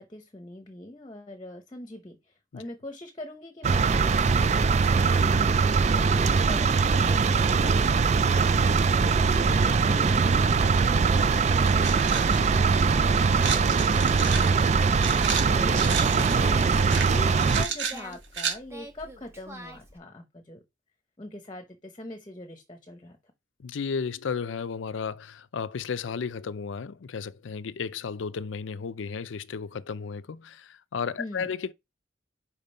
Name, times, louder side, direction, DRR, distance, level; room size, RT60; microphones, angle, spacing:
voice 1, 0.0-4.1 4.7-20.6 21.2-23.2 31.2-31.5, left 1 dB, 25° left, 0.9 m, -43 dB
sound 1, 3.6-17.6, right 5 dB, 35° right, 0.4 m, -22 dB
sound 2, 10.9-11.0 11.4-12.5 13.3-18.5, right 6 dB, 70° right, 1.4 m, -33 dB
Singing, 13.7-20.0, right 1 dB, 15° right, 1.2 m, -46 dB
voice 2, 23.6-31.7, left 5 dB, 85° left, 0.5 m, -33 dB
5.2 x 5.0 x 5.4 m
head